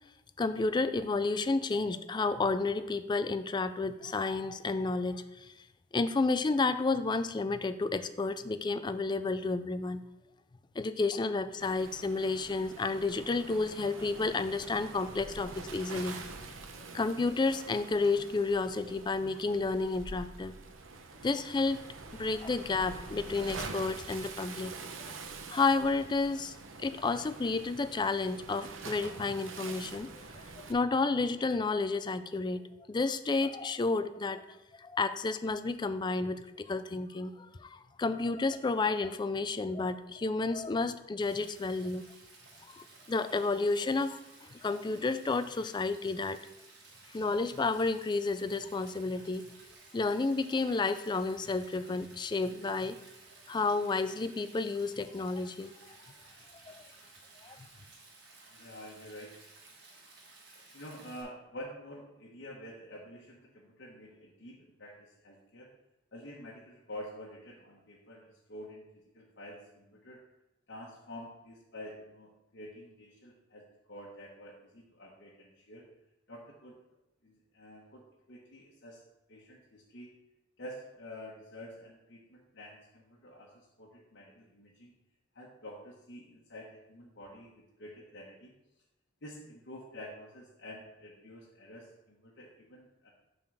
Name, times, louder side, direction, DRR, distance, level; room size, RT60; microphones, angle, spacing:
voice 1, 0.4-5.5 5.9-10.0 10.8-16.2 16.9-20.5 21.2-21.9 22.2-24.7 25.5-30.1 30.6-32.6 32.9-34.4 34.8-37.3 37.6-42.1 42.7-46.4 47.1-49.5 49.9-53.0 53.5-55.7 56.7-56.8 57.4-57.6, left 3 dB, 25° left, 12 dB, 0.3 m, -31 dB
Waves surf, 11.6-30.7, right 3 dB, 80° right, 0.8 m, -46 dB
Stream, 41.2-61.2, right 3 dB, 60° right, 1.8 m, -56 dB
voice 2, 57.5-57.8 58.5-59.5 60.7-65.7 66.1-70.2 70.7-75.8 76.3-76.8 77.2-79.0 79.3-80.1 80.6-84.9 85.3-88.5 89.2-93.1, left 1 dB, 60° left, -4 dB, 1.1 m, -48 dB
7.3 x 3.9 x 6.2 m, 0.95 s
head